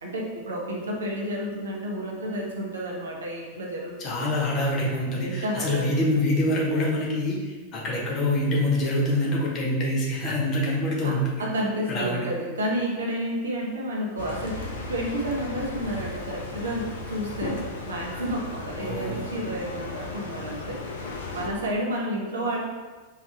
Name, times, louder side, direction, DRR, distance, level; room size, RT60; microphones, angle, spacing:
voice 1, 0.0-4.3 5.2-6.0 11.0-17.6 17.9-20.8 21.3-22.6, right 1 dB, 70° right, -2 dB, 0.9 m, -31 dB
voice 2, 4.0-11.3 11.9-12.3 18.8-19.3, left 1 dB, 35° left, -3 dB, 1.1 m, -25 dB
sound 1, 14.2-21.5, left 3 dB, 60° left, 0.7 m, -36 dB
4.7 x 2.8 x 3.4 m, 1.3 s
figure-of-eight pair, 90°, 0 cm